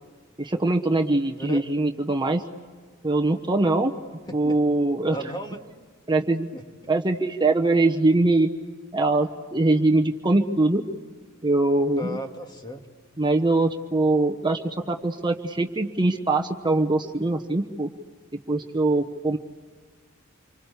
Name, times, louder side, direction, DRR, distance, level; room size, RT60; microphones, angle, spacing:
voice 1, 0.4-2.4 3.0-3.9 4.3-5.2 6.1-6.5 6.9-8.5 8.9-10.8 11.4-12.2 13.2-17.9 18.5-19.4, right 2 dB, 20° right, 5 dB, 1.1 m, -22 dB
voice 2, 5.1-5.6 6.5-6.6 12.0-12.8, equal, 20° left, 4 dB, 2.1 m, -35 dB
28.0 x 25.5 x 8.3 m, 1.6 s
head